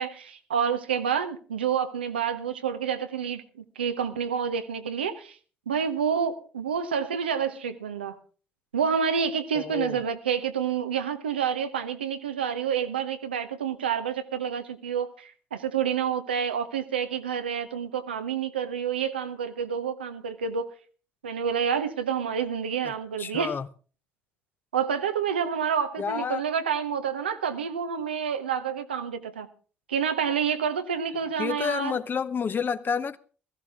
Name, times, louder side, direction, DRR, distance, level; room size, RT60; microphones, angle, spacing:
voice 1, 0.0-5.4 5.7-8.2 8.7-20.7 21.2-23.5 24.7-29.5 29.9-32.0, right 7 dB, 90° right, 0.8 m, -28 dB
voice 2, 9.5-10.0 22.8-22.9 23.2-23.7 26.0-26.4 31.4-33.2, left 6 dB, 40° left, 0.8 m, -29 dB
16.0 x 14.5 x 3.5 m
hypercardioid pair, 50°, 5 cm